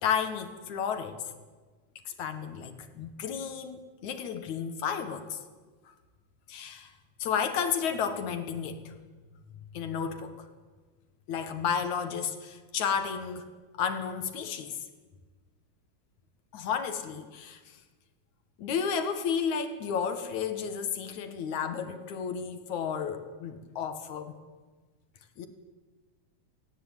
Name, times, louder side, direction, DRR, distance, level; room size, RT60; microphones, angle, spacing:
voice 1, 0.0-1.2 2.1-5.4 6.5-6.9 7.2-9.0 9.7-10.5 11.3-13.5 13.8-14.8 16.5-17.8 18.6-24.4 25.4-25.5, left 7 dB, 70° left, 8 dB, 2.8 m, -32 dB
18.0 x 17.5 x 9.2 m, 1.4 s
omnidirectional pair, 3.6 m